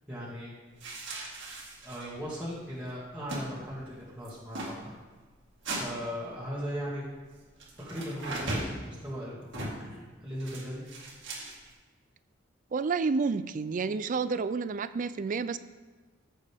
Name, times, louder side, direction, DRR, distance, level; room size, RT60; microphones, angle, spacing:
voice 1, 0.1-0.5 1.8-4.9 5.8-7.0 7.9-10.8, equal, 5° right, -9 dB, 2.0 m, -38 dB
sound 1, 0.8-2.2 2.5-2.6 2.8-3.4 3.7-3.9 4.2-4.7 5.6-5.9 7.6-8.8 9.5-9.9 10.4-11.7, right 2 dB, 70° right, 2.0 m, -37 dB
voice 2, 12.7-15.6, right 4 dB, 45° right, 14 dB, 0.4 m, -30 dB
14.0 x 6.5 x 3.5 m, 1.3 s
head